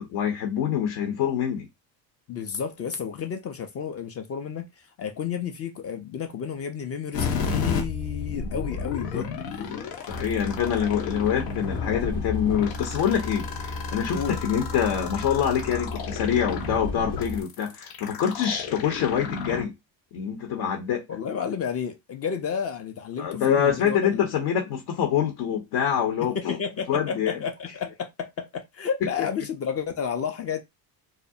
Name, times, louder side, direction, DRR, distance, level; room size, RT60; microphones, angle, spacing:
voice 1, 0.0-1.7 8.3-8.5 9.1-9.3 9.6-19.7 20.1-21.0 23.2-26.6 26.9-27.4, left 8 dB, 60° left, 0.8 m, -26 dB
voice 2, 2.3-9.4 14.1-14.4 21.1-24.3 26.2-30.6, left 7 dB, 35° left, 0.4 m, -31 dB
sound 1, 7.1-19.6, left 5 dB, 90° left, 0.8 m, -32 dB
sound 2, 10.1-17.4, left 2 dB, 10° left, 0.8 m, -35 dB
2.4 x 2.0 x 2.6 m
hypercardioid pair, 75°, 49 cm